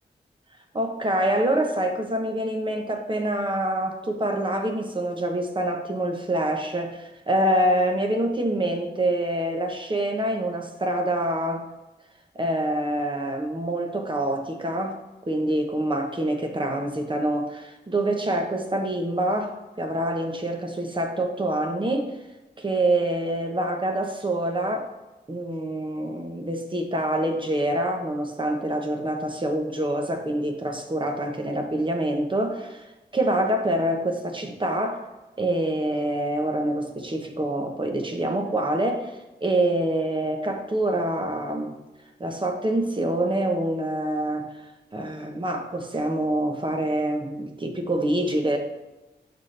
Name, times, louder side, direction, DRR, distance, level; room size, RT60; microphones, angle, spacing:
voice 1, 0.7-11.6 12.3-15.0 15.3-22.2 22.6-24.9 25.3-32.8 33.1-35.0 35.4-41.7 42.2-44.4 44.9-48.6, right 1 dB, 25° right, 3 dB, 1.1 m, -26 dB
11.5 x 4.3 x 3.3 m, 1.1 s
wide cardioid pair, 145°, 19 cm